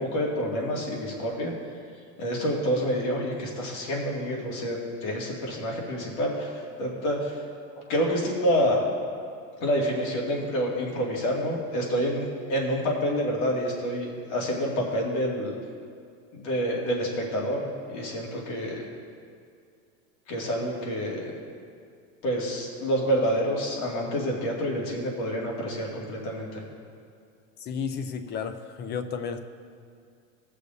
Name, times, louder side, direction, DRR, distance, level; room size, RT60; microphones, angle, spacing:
voice 1, 0.0-1.5 2.2-7.4 7.9-8.8 9.6-15.6 16.3-18.8 20.3-21.3 22.2-26.6, equal, 65° left, -2 dB, 2.3 m, -28 dB
voice 2, 27.6-29.4, left 6 dB, 25° left, 8 dB, 0.5 m, -32 dB
18.5 x 6.7 x 2.7 m, 2.3 s
supercardioid pair, 140°, 39 cm